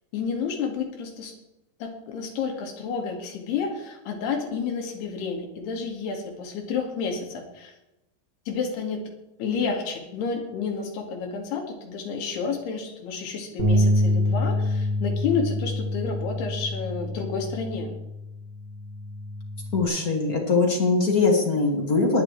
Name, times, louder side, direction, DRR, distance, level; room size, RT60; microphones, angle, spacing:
voice 1, 0.1-1.3 1.8-7.7 8.5-9.0 9.4-17.9, left 5 dB, 70° left, 2 dB, 4.2 m, -30 dB
Bass guitar, 13.6-19.8, left 1 dB, 70° right, 0.8 m, -26 dB
voice 2, 19.7-22.2, left 3 dB, 35° left, 0 dB, 1.6 m, -22 dB
19.5 x 9.9 x 4.9 m, 0.94 s
omnidirectional pair, 5.1 m